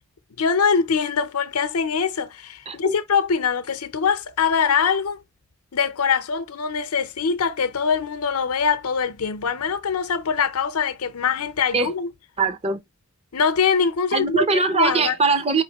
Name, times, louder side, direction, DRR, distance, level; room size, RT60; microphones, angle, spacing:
voice 1, 0.4-5.2 5.7-12.1 13.3-14.4 14.7-15.1, left 6 dB, 80° left, 0.7 m, -23 dB
voice 2, 2.7-3.0 11.7-11.9 12.4-12.8 14.1-15.6, right 4 dB, 25° right, 0.6 m, -21 dB
5.0 x 3.1 x 2.9 m
head